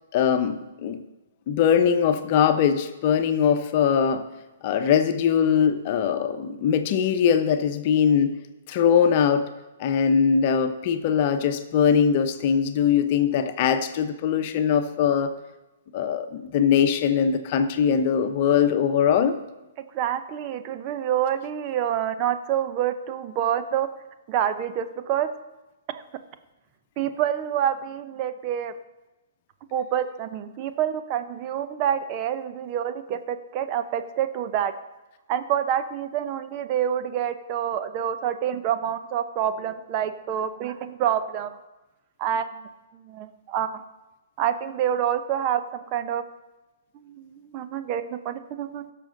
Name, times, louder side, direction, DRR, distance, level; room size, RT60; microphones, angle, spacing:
voice 1, 0.1-1.0 1.5-4.3 4.6-8.3 8.7-9.5 9.8-15.3 15.9-19.4, left 7 dB, 45° left, 9 dB, 0.9 m, -21 dB
voice 2, 19.9-23.9 24.3-25.3 25.9-26.0 27.0-28.7 29.7-34.7 35.3-41.5 42.2-42.6 43.0-43.8 44.4-46.2 46.9-48.9, right 10 dB, 35° right, 10 dB, 0.7 m, -27 dB
16.5 x 6.7 x 3.9 m, 1.0 s
figure-of-eight pair, 120°, 0 cm